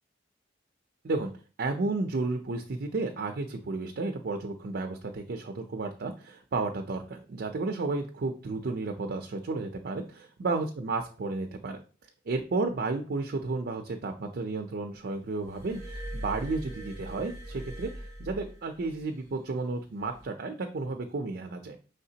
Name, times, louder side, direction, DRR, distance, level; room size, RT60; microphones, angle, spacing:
voice 1, 1.6-11.8 12.3-21.8, right 3 dB, 55° right, 4 dB, 0.5 m, -32 dB
Glass, 15.4-19.0 20.0-20.2, equal, 55° left, 2.5 m, -41 dB
5.7 x 3.4 x 2.8 m, 0.37 s
head